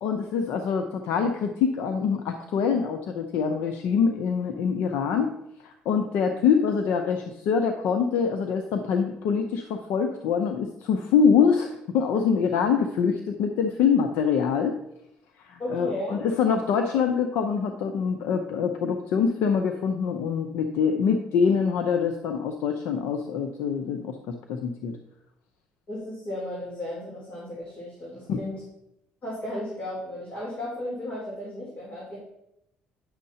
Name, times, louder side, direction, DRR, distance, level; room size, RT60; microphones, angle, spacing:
voice 1, 0.0-5.3 5.6-14.8 15.4-24.9 28.3-28.4, left 6 dB, 80° left, 5 dB, 0.7 m, -25 dB
voice 2, 15.6-16.2 25.9-28.6 29.2-32.2, left 1 dB, 45° left, -5 dB, 3.2 m, -34 dB
10.5 x 6.4 x 2.8 m, 0.82 s
supercardioid pair, 85°, 4 cm